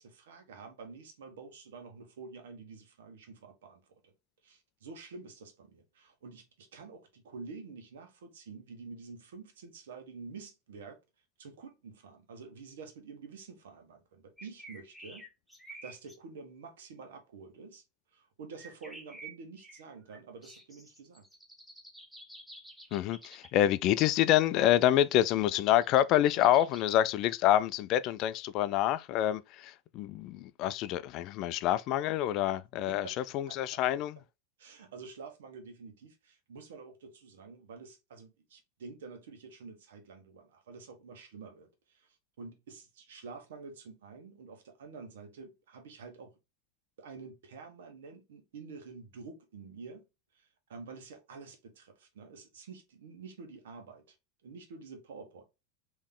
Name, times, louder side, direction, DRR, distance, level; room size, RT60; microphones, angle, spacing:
voice 1, 0.0-4.1 4.4-11.0 11.4-15.3 15.8-17.8 18.1-21.2 32.9-33.2 33.5-33.8 34.6-46.4 47.0-50.0 50.3-54.2 54.4-55.4, right 4 dB, 75° right, 1.3 m, -48 dB
sound 1, 14.4-16.2 18.6-23.5 25.5-26.8, right 2 dB, ahead, 1.2 m, -50 dB
voice 2, 22.9-34.2, left 12 dB, 50° left, 0.4 m, -27 dB
3.6 x 3.0 x 3.7 m
hypercardioid pair, 100°, 0 cm